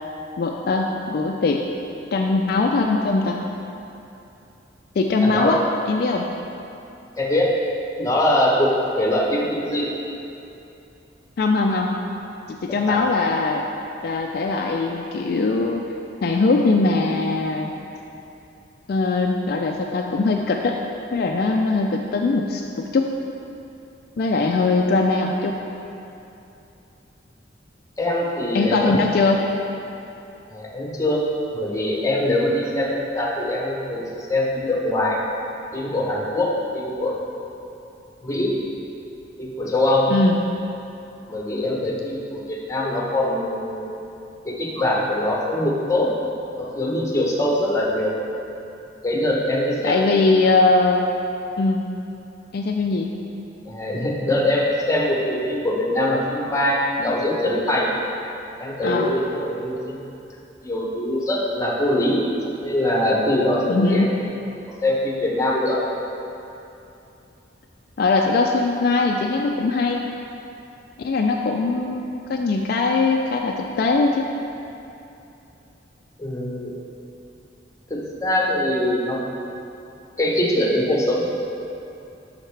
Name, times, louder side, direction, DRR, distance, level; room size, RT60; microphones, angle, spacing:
voice 1, 0.4-1.6 2.1-3.4 5.0-5.6 5.9-6.3 11.4-11.9 12.5-13.6 14.0-15.9 16.2-17.7 18.9-20.8 21.1-23.1 24.2-25.6 28.5-29.5 40.1-40.4 49.8-51.1 51.6-51.9 52.5-53.1 58.8-59.1 63.7-64.1 68.0-70.0 71.0-74.3, left 3 dB, 55° left, 1 dB, 0.3 m, -21 dB
voice 2, 5.2-5.6 7.2-7.6 8.0-9.9 12.7-13.0 28.0-29.1 30.5-31.2 31.5-35.2 35.7-37.1 38.2-38.6 39.4-40.1 41.3-44.0 44.4-46.1 46.6-48.2 49.0-50.5 53.6-57.9 58.6-60.1 60.6-62.3 62.6-64.0 64.8-65.8 76.2-76.8 77.9-79.2 80.2-81.3, left 1 dB, 15° left, -3 dB, 0.8 m, -23 dB
7.7 x 5.7 x 3.3 m, 2.8 s
head